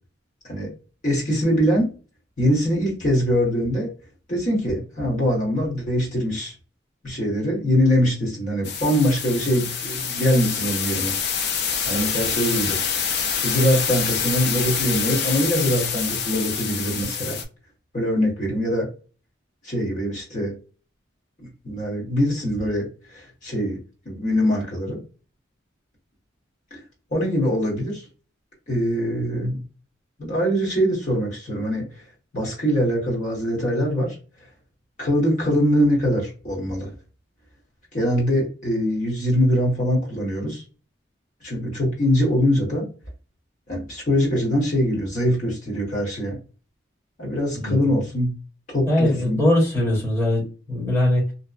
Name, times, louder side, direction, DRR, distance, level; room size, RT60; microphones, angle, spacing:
voice 1, 1.0-1.9 2.4-3.9 4.3-6.5 7.0-11.2 11.8-12.8 13.4-17.4 17.9-18.9 19.6-20.6 21.6-23.8 24.0-25.0 26.7-26.8 27.1-28.0 28.7-29.6 30.2-32.0 32.3-34.2 35.0-36.9 37.9-40.6 41.4-42.9 43.7-46.4 47.2-48.4 48.7-49.4, equal, 40° left, -3 dB, 1.2 m, -23 dB
sound 1, 8.6-17.4, left 7 dB, 55° left, 0.5 m, -26 dB
voice 2, 48.9-51.3, left 1 dB, 15° left, -6 dB, 1.0 m, -21 dB
2.8 x 2.1 x 2.4 m, 0.35 s
head